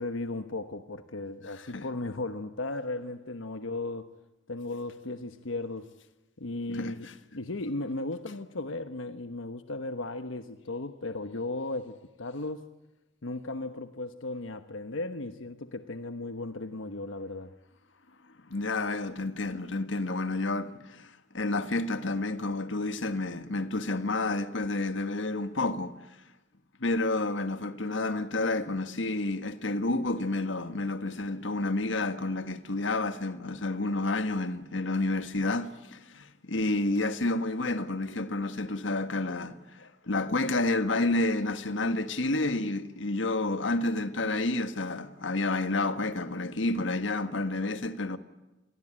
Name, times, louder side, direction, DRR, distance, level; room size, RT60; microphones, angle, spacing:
voice 1, 0.0-4.1 4.5-5.9 6.4-7.1 7.3-12.6 13.2-17.5, left 2 dB, 85° left, 1.1 m, -36 dB
voice 2, 6.7-7.1 18.5-26.0 26.8-48.2, left 2 dB, 70° left, 1.6 m, -30 dB
28.0 x 22.0 x 8.9 m
head